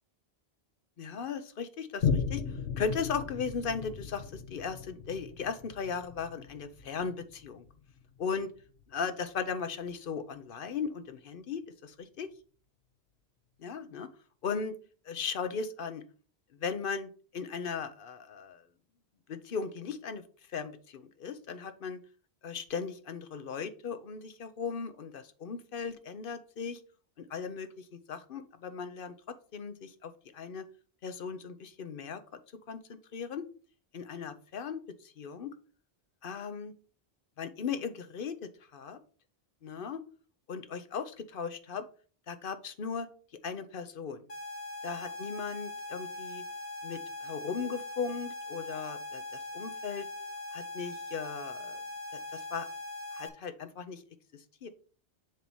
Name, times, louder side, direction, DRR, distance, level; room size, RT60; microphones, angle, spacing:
voice 1, 1.0-2.4 2.8-7.6 8.2-8.5 8.9-12.3 13.6-14.1 14.4-14.7 15.1-16.0 16.6-18.6 19.3-20.2 20.5-22.0 22.4-26.8 27.2-29.1 29.5-30.6 31.0-32.4 32.7-33.5 33.9-35.5 36.2-36.7 37.4-39.0 39.6-40.0 40.5-41.8 42.3-43.1 43.4-44.2 44.8-46.4 46.8-49.2 49.5-50.1 50.5-51.8 52.1-52.7 53.1-54.0 54.3-54.7, left 6 dB, 60° left, 10 dB, 0.8 m, -37 dB
Boom, 2.0-8.9 9.5-9.6, left 6 dB, 85° left, 1.1 m, -36 dB
sound 1, 44.3-53.3, left 2 dB, 40° left, 1.2 m, -41 dB
7.4 x 2.9 x 5.4 m, 0.40 s
omnidirectional pair, 1.1 m